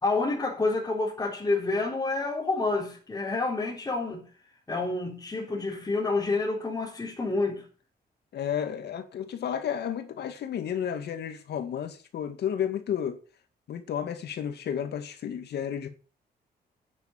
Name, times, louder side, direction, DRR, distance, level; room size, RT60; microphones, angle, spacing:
voice 1, 0.0-4.3 4.7-7.6, left 3 dB, 20° left, 3.9 m, -28 dB
voice 2, 8.3-13.2 13.7-15.9, left 9 dB, 75° left, 2.1 m, -32 dB
9.6 x 9.3 x 7.6 m
cardioid pair, 125°, 17 cm